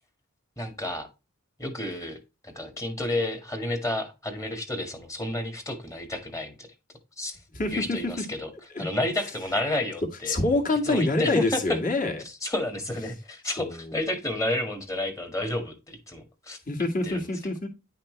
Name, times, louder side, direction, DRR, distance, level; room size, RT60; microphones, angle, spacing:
voice 1, 0.6-1.1 1.6-2.2 2.4-6.7 7.2-7.4 7.7-8.5 8.8-10.4 10.8-11.8 12.2-16.6 17.0-17.2, left 1 dB, 15° left, 6 dB, 1.6 m, -30 dB
voice 2, 7.5-8.2 8.7-8.9 10.3-12.2 13.6-13.7 16.7-17.7, left 2 dB, 40° left, 1 dB, 2.1 m, -26 dB
10.0 x 5.8 x 3.2 m, 0.27 s
head